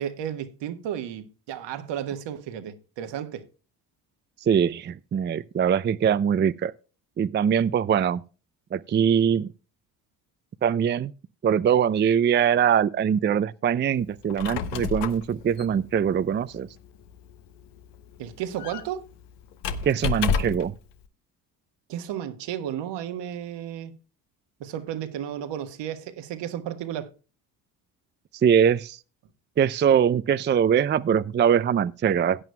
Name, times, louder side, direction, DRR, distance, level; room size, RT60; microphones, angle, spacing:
voice 1, 0.0-3.5 18.2-19.0 21.9-24.0 24.6-27.1, right 10 dB, 70° right, 1.4 m, -33 dB
voice 2, 4.4-6.7 7.2-8.2 8.7-9.5 10.6-11.1 11.4-16.7 19.8-20.7 28.4-29.0 29.6-32.4, right 8 dB, 25° right, 0.4 m, -22 dB
Squeak, 14.1-20.8, left 6 dB, 70° left, 1.2 m, -32 dB
17.0 x 9.1 x 2.2 m
supercardioid pair, 70°, 44 cm